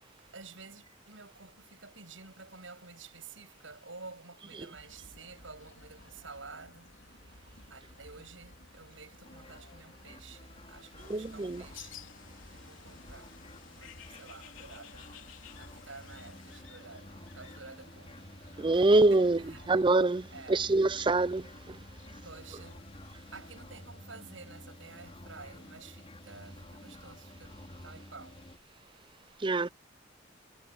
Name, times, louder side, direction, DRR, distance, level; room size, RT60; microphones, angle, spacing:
voice 1, 0.2-12.1 12.5-13.4 13.8-19.7 20.3-20.6 22.1-28.4, right 4 dB, 80° right, 7.3 m, -51 dB
sound 1, 4.7-23.6, left 1 dB, 65° left, 4.2 m, -57 dB
sound 2, 9.2-28.6, left 1 dB, 30° left, 3.9 m, -51 dB
Bird, 11.0-16.6, left 7 dB, 85° left, 3.3 m, -52 dB
voice 2, 11.1-11.6 18.6-19.4 19.7-21.4 29.4-29.7, right 2 dB, 25° right, 0.5 m, -25 dB
head